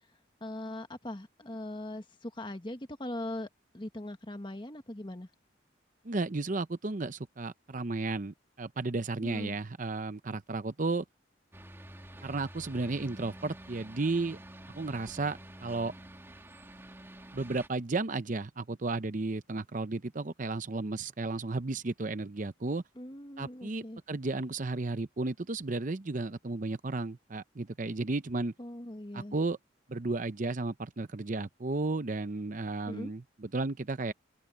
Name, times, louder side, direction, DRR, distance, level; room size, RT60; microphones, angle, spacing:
voice 1, 0.4-3.5 3.7-5.3 9.2-9.6 23.0-24.0 28.6-29.4 32.9-33.1, left 1 dB, 25° left, 1.4 m, -40 dB
voice 2, 6.0-11.0 12.2-14.4 14.7-15.9 17.3-22.8 23.4-28.5 29.1-29.6 29.9-34.1, right 3 dB, 40° right, 0.7 m, -33 dB
sound 1, 11.5-17.7, right 1 dB, 15° right, 2.5 m, -49 dB
open air
head